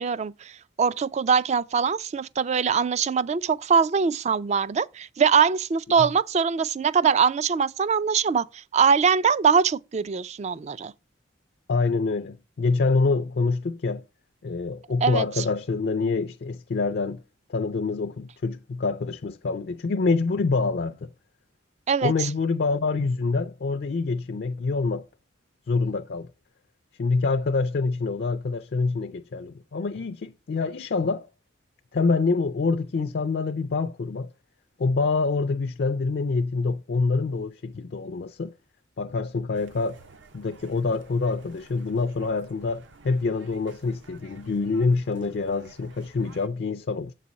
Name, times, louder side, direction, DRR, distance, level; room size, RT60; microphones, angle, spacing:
voice 1, 0.0-10.9 15.0-15.4 21.9-22.3, right 6 dB, 35° right, 0.3 m, -23 dB
voice 2, 11.7-14.0 14.4-17.2 17.5-21.1 22.0-25.1 25.7-26.3 27.0-31.3 31.9-34.3 34.8-38.5 39.0-40.0 40.3-47.1, left 4 dB, 55° left, 0.4 m, -26 dB
sound 1, 39.5-46.5, right 3 dB, 65° right, 0.8 m, -53 dB
7.6 x 4.1 x 6.3 m
head